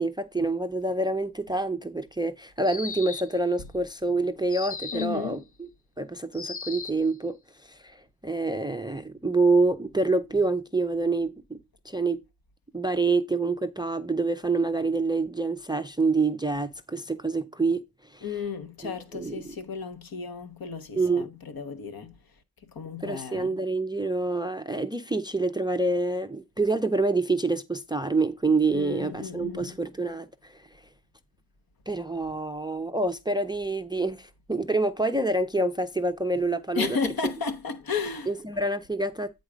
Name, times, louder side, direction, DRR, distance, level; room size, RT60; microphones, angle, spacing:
voice 1, 0.0-5.7 6.0-7.4 7.6-11.6 11.8-12.2 12.7-18.3 18.8-19.4 21.0-21.3 23.0-30.7 31.9-37.0 38.3-39.3, right 3 dB, 10° right, 0.5 m, -27 dB
sound 1, 2.6-3.4 4.5-5.2 6.3-7.1, left 4 dB, 35° left, 0.8 m, -37 dB
voice 2, 4.9-5.4 18.2-22.2 22.6-23.6 28.7-29.7 36.7-38.3, left 5 dB, 60° left, 1.2 m, -33 dB
9.3 x 4.0 x 5.0 m
wide cardioid pair, 110°, 41 cm